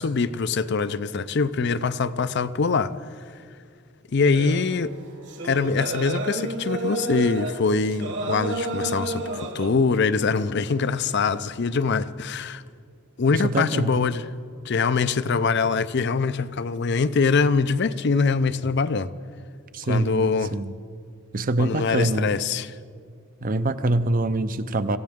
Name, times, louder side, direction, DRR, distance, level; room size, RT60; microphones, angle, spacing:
voice 1, 0.0-2.9 4.1-4.9 5.4-12.6 13.2-14.3 14.6-19.1 19.8-20.5 21.6-22.8, left 4 dB, 55° left, 0.5 m, -23 dB
sound 1, 4.3-9.7, right 2 dB, 60° right, 1.7 m, -31 dB
voice 2, 13.3-14.1 19.7-20.7 21.3-22.3 23.4-25.0, right 2 dB, 40° right, 0.6 m, -25 dB
25.5 x 15.5 x 3.6 m
head